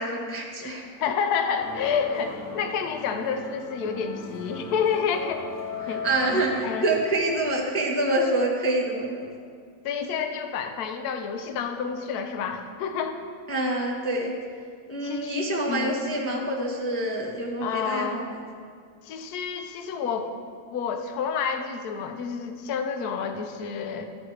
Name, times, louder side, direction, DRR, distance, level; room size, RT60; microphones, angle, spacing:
voice 1, 0.0-0.8 5.8-9.3 13.5-14.3 14.9-18.4, right 1 dB, 15° left, -1 dB, 0.5 m, -26 dB
voice 2, 0.6-5.4 5.9-6.0 6.3-6.9 9.8-13.2 15.0-15.4 15.7-16.0 17.6-18.2 19.0-20.3 20.7-24.1, left 6 dB, 65° left, 6 dB, 1.2 m, -29 dB
sound 1, 1.6-8.1, left 3 dB, 50° left, 1.6 m, -38 dB
13.5 x 8.7 x 3.2 m, 2.1 s
omnidirectional pair, 1.9 m